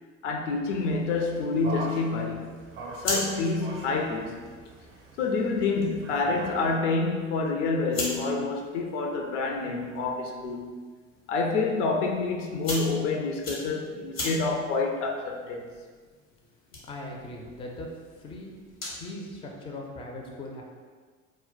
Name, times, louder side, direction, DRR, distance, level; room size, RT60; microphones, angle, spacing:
voice 1, 0.2-2.5 3.0-4.4 5.2-10.7 11.3-15.7, left 3 dB, 65° left, 2 dB, 0.5 m, -28 dB
sound 1, 0.7-6.7, right 2 dB, 35° right, 0.6 m, -42 dB
sound 2, 2.7-19.1, left 1 dB, 80° left, 0.9 m, -40 dB
voice 2, 16.9-17.9 18.1-18.5 19.0-20.6, left 2 dB, 15° left, 0 dB, 0.4 m, -39 dB
2.1 x 2.1 x 3.8 m, 1.5 s
figure-of-eight pair, 60°, 39 cm